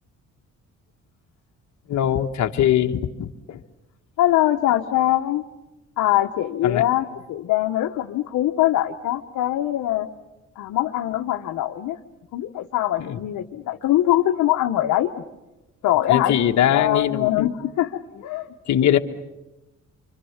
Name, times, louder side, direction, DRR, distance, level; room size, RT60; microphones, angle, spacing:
voice 1, 1.9-3.6 6.6-6.8 13.0-13.2 16.1-17.5 18.7-19.0, left 10 dB, 70° left, 4 dB, 1.5 m, -21 dB
voice 2, 4.2-5.4 6.0-10.1 10.6-12.0 12.3-15.1 15.8-16.4 16.7-18.5 18.8-19.0, left 14 dB, 85° left, 2 dB, 1.2 m, -22 dB
26.5 x 25.5 x 7.3 m, 1.0 s
cardioid pair, 90°, 30 cm